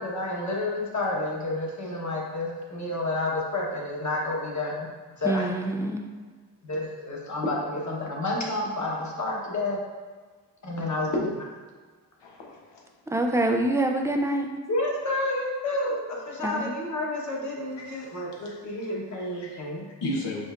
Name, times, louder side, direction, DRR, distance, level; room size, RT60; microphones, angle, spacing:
voice 1, 0.0-4.9 5.2-5.5 6.6-9.8 10.6-11.3 14.7-19.9, left 2 dB, 45° left, -3 dB, 1.2 m, -30 dB
voice 2, 5.2-6.0 13.1-14.5 16.4-16.7, right 1 dB, 5° right, 3 dB, 0.4 m, -25 dB
voice 3, 12.2-12.8 17.8-18.1 18.4-18.9 19.2-19.6 20.0-20.4, left 1 dB, 85° left, -1 dB, 1.0 m, -35 dB
5.2 x 4.0 x 2.5 m, 1.4 s
cardioid pair, 95°, 42 cm